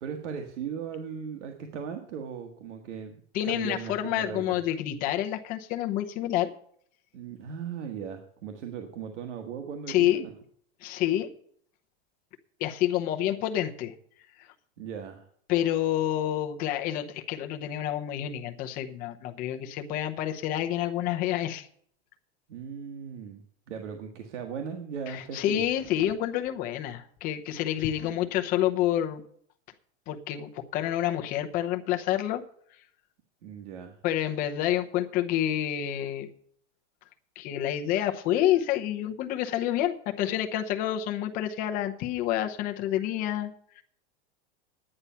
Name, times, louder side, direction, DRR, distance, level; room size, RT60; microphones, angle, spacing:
voice 1, 0.0-3.2 3.4-4.6 7.1-10.4 14.8-15.3 22.5-23.4 23.7-25.6 33.4-34.0, right 7 dB, 90° right, 4 dB, 1.6 m, -38 dB
voice 2, 3.3-6.5 9.9-10.2 10.8-11.3 12.6-13.9 14.4-14.5 15.5-21.7 25.1-29.2 30.1-32.4 34.0-36.3 37.4-43.8, left 12 dB, 25° left, 5 dB, 0.8 m, -28 dB
10.5 x 9.9 x 5.7 m, 0.62 s
supercardioid pair, 175°, 34 cm